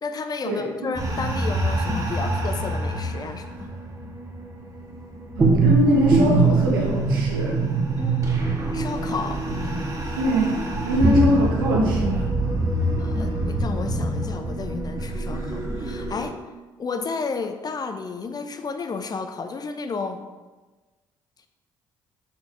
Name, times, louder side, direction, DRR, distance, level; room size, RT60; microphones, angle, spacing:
voice 1, 0.0-3.7 8.0-8.3 8.7-9.4 13.0-16.4 16.8-20.3, left 4 dB, 35° left, 8 dB, 0.8 m, -32 dB
sound 1, 0.9-16.3, right 2 dB, 30° right, 1.8 m, -24 dB
voice 2, 5.4-7.5 10.1-10.6 10.8-12.3, equal, 90° right, -2 dB, 1.4 m, -22 dB
6.0 x 4.6 x 4.8 m, 1.2 s
hypercardioid pair, 55°, 11 cm